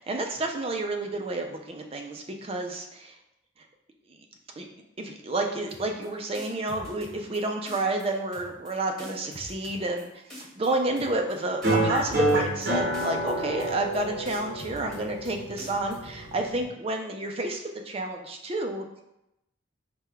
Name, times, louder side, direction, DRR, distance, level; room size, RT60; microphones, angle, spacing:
voice 1, 0.1-3.1 4.6-4.7 5.0-18.8, right 2 dB, 30° right, 3 dB, 0.5 m, -30 dB
sound 1, 5.7-6.1 6.3-7.4 7.7-8.0 8.3-8.7 9.0-10.0 10.3-10.7 11.0-11.3 11.6-12.7 12.9-13.3 13.6-14.0 14.3-15.3 15.6-16.0, equal, 5° left, 1.5 m, -44 dB
sound 2, 11.6-16.6, right 1 dB, 55° right, 1.0 m, -28 dB
4.7 x 2.3 x 4.7 m, 0.86 s
head